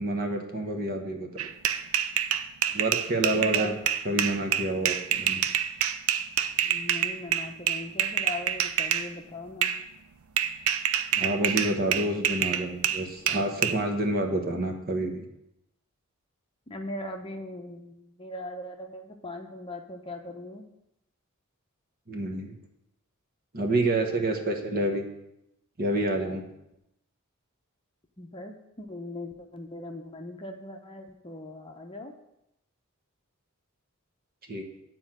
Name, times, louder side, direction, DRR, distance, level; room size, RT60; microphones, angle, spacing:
voice 1, 0.0-1.5 2.7-3.7 4.0-5.4 11.1-15.2 22.1-22.5 23.5-25.1 25.8-26.4 34.5-34.6, right 1 dB, 45° right, 3 dB, 1.2 m, -28 dB
sound 1, 1.4-9.1 9.6-9.8 10.4-13.7, right 9 dB, 70° right, 0.6 m, -27 dB
voice 2, 3.3-3.8 6.6-9.8 16.7-20.6 28.2-32.1, left 1 dB, 25° left, 3 dB, 0.7 m, -39 dB
9.5 x 4.5 x 7.6 m, 0.85 s
head